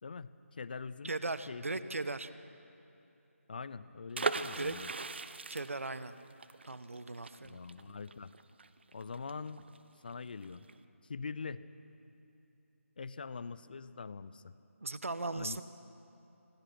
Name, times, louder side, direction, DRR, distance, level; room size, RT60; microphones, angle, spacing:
voice 1, 0.0-1.1 1.5-1.9 3.5-4.9 7.4-8.3 8.9-9.7 10.0-10.7 11.0-11.6 13.0-14.5 15.3-15.6, left 5 dB, 40° left, 16 dB, 0.7 m, -43 dB
voice 2, 1.0-2.3 4.4-4.8 5.5-6.1 6.6-7.6 14.8-15.6, right 3 dB, 65° right, 13 dB, 1.2 m, -38 dB
sound 1, 4.1-9.8 10.1-10.2 10.4-10.7, right 4 dB, 50° right, 0.8 m, -39 dB
25.5 x 20.0 x 6.0 m, 2.8 s
figure-of-eight pair, 160°, 8 cm